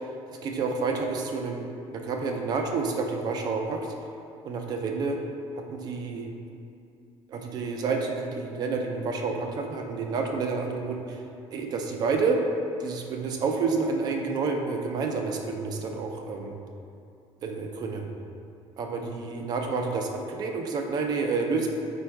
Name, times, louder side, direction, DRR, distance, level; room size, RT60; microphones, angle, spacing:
voice 1, 0.4-1.6 1.9-3.8 4.4-5.2 5.6-6.3 7.3-11.2 11.5-12.4 12.8-16.6 17.4-18.1 18.8-21.7, right 4 dB, 40° right, 3 dB, 0.4 m, -29 dB
4.3 x 2.3 x 4.5 m, 2.6 s
cardioid pair, 180°, 11 cm